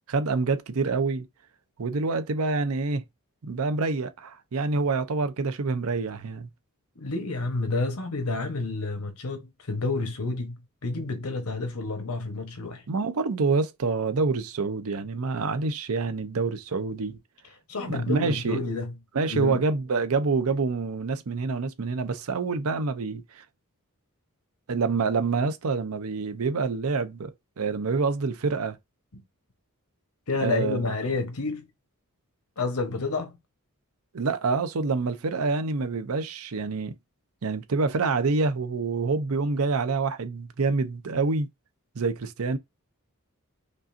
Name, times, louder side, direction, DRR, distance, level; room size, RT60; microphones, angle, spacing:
voice 1, 0.1-1.3 1.8-3.0 3.4-6.5 12.9-17.2 17.8-18.6 19.1-23.4 24.7-28.8 30.4-31.0 34.1-37.0 37.4-41.5 42.0-42.6, right 4 dB, 75° right, 0.6 m, -27 dB
voice 2, 7.0-12.8 17.7-18.9 19.3-19.6 29.1-29.2 30.3-31.7 32.6-33.4, left 3 dB, 80° left, 1.1 m, -29 dB
5.2 x 2.5 x 2.6 m
head